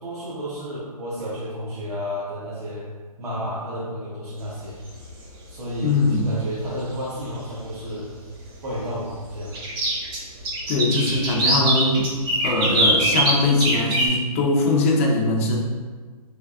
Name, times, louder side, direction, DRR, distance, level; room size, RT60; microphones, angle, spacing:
voice 1, 0.0-2.9 3.2-4.8 5.5-8.1 8.6-9.7, equal, 80° right, -9 dB, 1.1 m, -31 dB
sound 1, 4.7-5.1 6.6-6.7 7.2-7.3 9.5-14.1, right 1 dB, 35° right, 0.8 m, -22 dB
voice 2, 5.8-6.3 10.7-12.1 12.4-15.6, left 2 dB, 20° left, 0 dB, 0.3 m, -21 dB
3.4 x 3.1 x 2.3 m, 1.5 s
hypercardioid pair, 145°, 20 cm